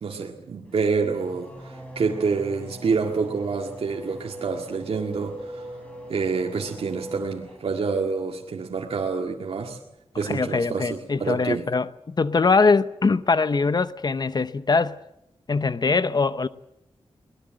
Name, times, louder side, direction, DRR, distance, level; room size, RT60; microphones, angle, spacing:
voice 1, 0.0-5.8 6.1-9.8 10.2-11.6, right 5 dB, 75° right, 2.0 m, -27 dB
Race car auto racing / Accelerating revving vroom, 0.6-7.9, equal, 15° left, 6.8 m, -41 dB
voice 2, 10.3-15.0 15.5-16.5, left 4 dB, 45° left, 0.8 m, -22 dB
23.5 x 19.5 x 7.7 m
wide cardioid pair, 80°, 10 cm